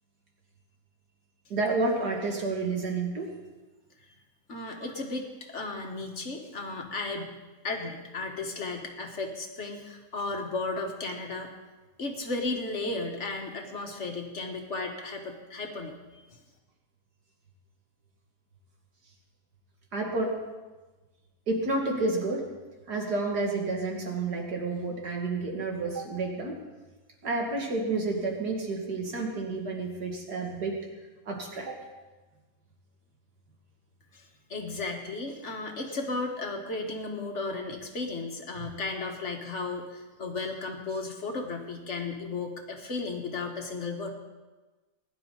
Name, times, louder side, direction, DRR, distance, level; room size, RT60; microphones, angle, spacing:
voice 1, 1.5-3.3 19.9-20.4 21.5-22.5 22.9-26.6 27.2-30.8 31.3-31.8, right 3 dB, 70° right, 0 dB, 2.7 m, -30 dB
voice 2, 4.5-7.3 7.6-11.5 12.0-16.3 34.1-44.1, left 3 dB, 45° left, 2 dB, 1.9 m, -34 dB
20.5 x 11.0 x 4.0 m, 1.2 s
omnidirectional pair, 1.8 m